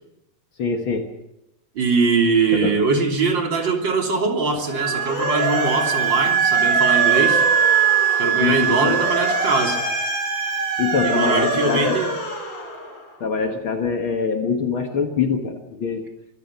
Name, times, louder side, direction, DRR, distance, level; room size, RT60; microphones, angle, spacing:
voice 1, 0.6-1.1 2.6-2.8 8.4-9.0 10.8-12.1 13.2-16.1, left 5 dB, 85° left, 4 dB, 1.1 m, -24 dB
voice 2, 1.7-7.5 8.2-9.8 11.0-12.1, right 4 dB, 30° right, 2 dB, 3.2 m, -22 dB
Motor vehicle (road) / Siren, 4.5-13.1, equal, 40° left, 5.1 m, -27 dB
Wind instrument woodwind instrument, 4.7-12.2, right 10 dB, 75° right, 3.0 m, -22 dB
25.0 x 16.0 x 7.0 m, 0.88 s
omnidirectional pair, 4.7 m